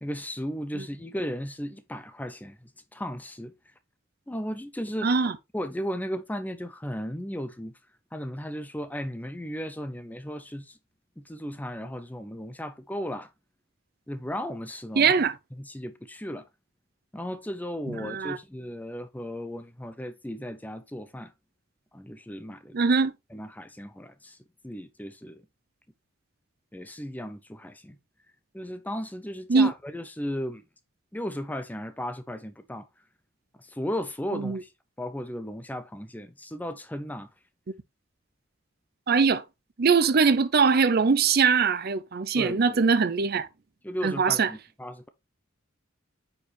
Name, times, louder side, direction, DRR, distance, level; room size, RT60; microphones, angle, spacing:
voice 1, 0.0-3.5 4.3-5.1 5.5-7.7 8.1-10.8 11.2-13.3 14.1-15.1 15.6-16.4 17.1-21.3 21.9-22.8 23.3-24.4 24.6-25.4 26.7-28.0 28.5-30.6 31.1-32.9 33.6-34.7 35.0-37.3 42.3-42.8 43.8-45.1, equal, 10° left, 0.6 m, -35 dB
voice 2, 5.0-5.3 15.0-15.3 18.0-18.4 22.7-23.1 29.5-29.7 34.3-34.6 39.1-39.4 39.8-43.5 44.0-44.5, right 5 dB, 50° right, 0.5 m, -22 dB
9.2 x 4.7 x 3.3 m
head